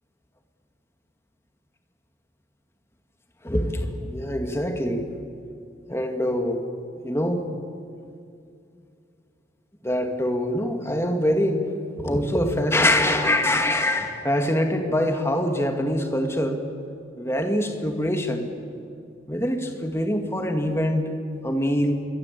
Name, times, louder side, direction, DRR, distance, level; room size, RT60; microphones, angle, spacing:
voice 1, 3.4-5.1 5.9-6.6 7.0-7.4 9.8-11.6 12.0-16.6 17.2-18.4 19.3-21.1 21.4-22.0, left 1 dB, 15° left, 4 dB, 2.2 m, -24 dB
27.0 x 23.5 x 8.5 m, 2.4 s
head